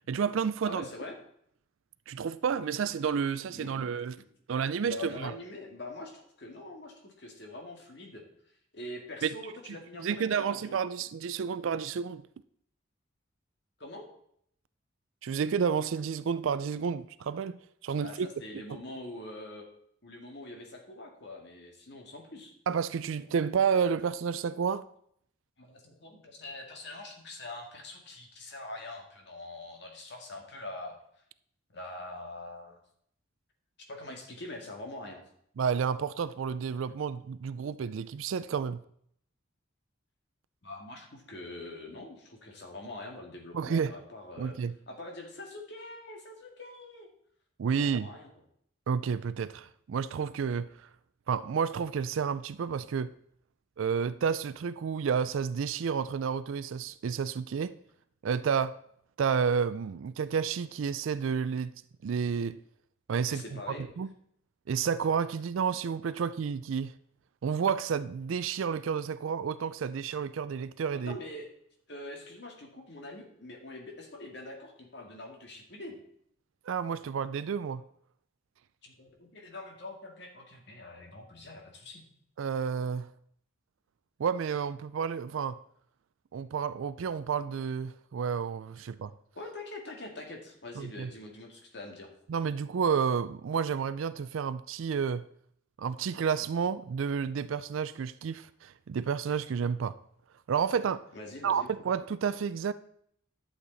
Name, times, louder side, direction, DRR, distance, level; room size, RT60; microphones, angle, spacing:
voice 1, 0.1-0.8 2.1-4.2 4.5-5.4 9.2-9.3 9.7-12.2 15.2-18.3 18.7-18.8 22.7-24.9 35.6-38.8 43.5-43.9 44.4-44.7 47.6-48.1 48.9-50.7 51.3-53.1 53.8-57.8 58.2-58.8 59.2-61.7 62.0-62.6 63.1-63.4 63.8-64.1 64.7-66.9 67.4-71.2 76.7-77.8 82.4-83.1 84.2-85.6 86.3-89.1 90.8-91.1 92.3-95.3 95.8-99.9 100.5-101.0 101.4-102.7, right 6 dB, 75° right, 0.4 m, -30 dB
voice 2, 0.6-1.2 3.5-3.9 4.2-4.3 4.8-8.2 8.7-10.8 13.8-14.1 18.0-19.7 20.0-22.5 25.6-31.0 31.7-32.8 33.9-35.2 40.6-44.6 44.9-47.1 47.8-48.3 63.3-63.9 71.1-71.5 71.9-76.0 78.8-82.0 89.3-92.1 101.1-101.7, left 2 dB, 55° left, 1.9 m, -44 dB
11.5 x 7.4 x 4.0 m
head